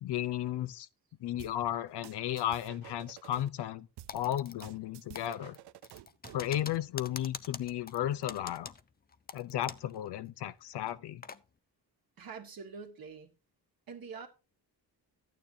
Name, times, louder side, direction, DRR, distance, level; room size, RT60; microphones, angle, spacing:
voice 1, 0.0-0.9 1.2-3.9 4.1-5.6 6.3-8.7 9.3-11.2, left 12 dB, 85° left, 0.6 m, -34 dB
sound 1, 1.4-3.5 4.0-6.5, right 15 dB, 80° right, 0.5 m, -51 dB
Typing, 4.1-4.9 5.2-10.0 10.3-10.4 10.8-11.4, left 6 dB, 25° left, 0.4 m, -45 dB
voice 2, 12.2-13.3 13.9-14.3, right 5 dB, 60° right, 1.7 m, -45 dB
13.0 x 9.2 x 2.7 m
cardioid pair, 115°, 40 cm